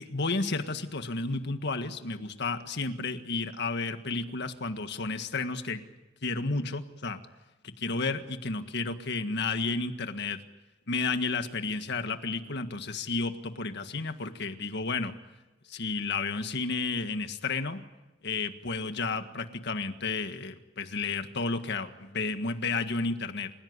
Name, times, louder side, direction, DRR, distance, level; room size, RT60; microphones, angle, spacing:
voice 1, 0.0-5.8 6.2-7.2 7.6-10.4 10.9-15.1 15.7-17.8 18.2-23.5, left 3 dB, 65° left, 8 dB, 1.7 m, -32 dB
28.5 x 16.5 x 9.7 m, 1.1 s
head